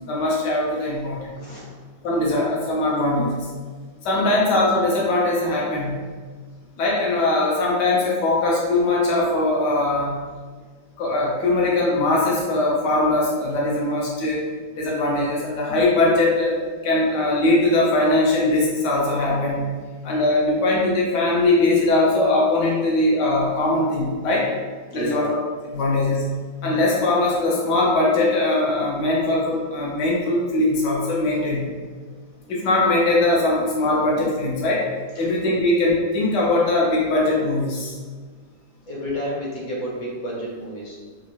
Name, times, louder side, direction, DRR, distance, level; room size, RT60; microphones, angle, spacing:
voice 1, 0.0-1.3 2.0-3.5 4.0-5.9 6.8-10.1 11.0-14.4 14.8-16.5 16.8-19.7 20.0-24.5 24.9-25.4 25.7-26.2 26.6-31.7 32.5-34.8 35.2-38.0, left 2 dB, 80° left, -4 dB, 1.5 m, -21 dB
voice 2, 1.4-1.8 2.2-2.3 4.1-4.4 24.9-25.3 32.1-32.2 35.1-35.6 38.8-41.0, equal, 55° left, -5 dB, 1.1 m, -31 dB
3.7 x 2.6 x 3.0 m, 1.5 s
omnidirectional pair, 1.8 m